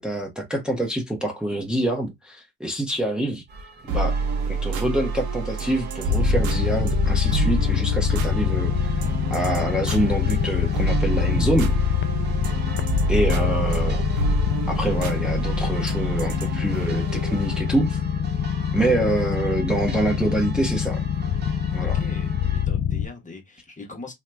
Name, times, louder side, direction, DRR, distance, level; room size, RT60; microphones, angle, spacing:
voice 1, 0.0-3.4 3.9-4.1 4.5-9.0 9.3-11.7 13.1-14.0 14.7-18.0 18.7-21.0 21.7-22.0, right 1 dB, 5° right, 0.9 m, -26 dB
sound 1, 3.5-22.7, right 5 dB, 35° right, 0.7 m, -43 dB
sound 2, 3.9-17.7, right 4 dB, 70° right, 0.7 m, -28 dB
sound 3, 6.1-23.1, left 9 dB, 40° left, 0.5 m, -25 dB
voice 2, 21.8-24.1, left 3 dB, 25° left, 1.1 m, -41 dB
2.8 x 2.3 x 3.2 m
cardioid pair, 90°, 30 cm